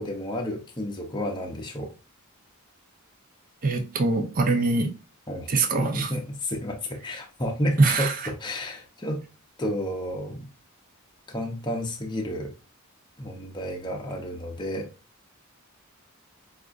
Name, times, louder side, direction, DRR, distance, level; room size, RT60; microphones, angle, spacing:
voice 1, 0.0-1.9 5.3-5.5 5.8-9.2 9.6-10.5 11.3-12.5 13.2-14.9, equal, 20° left, 0.6 m, -31 dB
voice 2, 3.6-4.9 5.5-6.1 7.8-8.1, right 3 dB, 40° right, 0.5 m, -23 dB
4.8 x 2.4 x 2.4 m
head